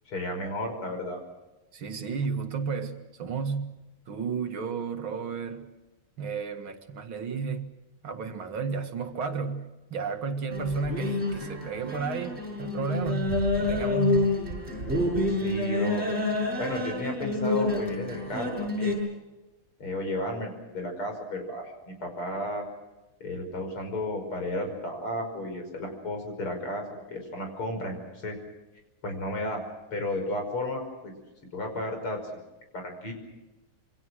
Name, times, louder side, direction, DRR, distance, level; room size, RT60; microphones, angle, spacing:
voice 1, 0.1-1.2 15.3-16.0 16.6-19.0 19.8-21.7 22.0-22.6 23.2-28.0 28.2-28.4 29.0-29.6 29.9-31.1 31.5-32.2 32.7-33.1, left 1 dB, 85° left, 6.4 m, -33 dB
voice 2, 1.7-3.7 4.1-5.7 6.2-7.7 8.0-14.4, right 5 dB, 70° right, 2.6 m, -32 dB
sound 1, 10.5-18.9, left 2 dB, 30° right, 7.6 m, -28 dB
27.0 x 24.5 x 6.3 m
omnidirectional pair, 2.3 m